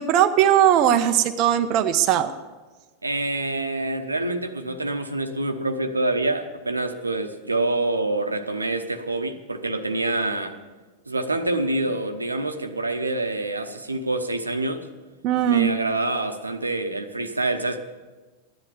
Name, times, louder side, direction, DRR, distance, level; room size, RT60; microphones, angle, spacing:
voice 1, 0.0-2.3 15.2-15.7, right 10 dB, 40° right, 8 dB, 0.6 m, -19 dB
voice 2, 3.0-10.6 11.1-14.9 15.5-17.8, right 2 dB, 80° right, 8 dB, 0.9 m, -26 dB
14.0 x 10.5 x 7.1 m, 1.3 s
figure-of-eight pair, 90°, 0 cm